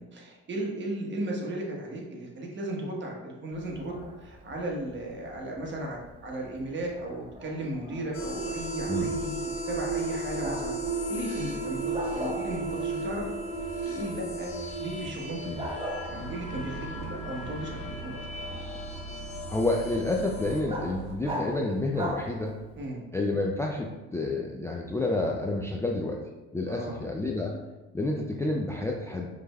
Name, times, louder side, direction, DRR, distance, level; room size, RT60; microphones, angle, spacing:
voice 1, 0.0-10.7 11.1-11.8 12.1-13.3 13.9-14.5 14.8-15.7 16.1-18.3 22.8-23.0 26.7-27.0, right 1 dB, 40° right, -1 dB, 1.2 m, -35 dB
Bark, 3.5-22.9, equal, 20° right, 0.9 m, -42 dB
sound 1, 8.1-20.6, right 2 dB, 50° left, 1.2 m, -35 dB
sound 2, 16.1-21.2, right 3 dB, 55° right, 0.7 m, -42 dB
voice 2, 19.5-22.5 23.1-26.2 26.5-27.6 27.9-29.3, left 2 dB, 10° left, -1 dB, 0.4 m, -29 dB
5.0 x 3.3 x 2.3 m, 1.1 s
supercardioid pair, 80°, 30 cm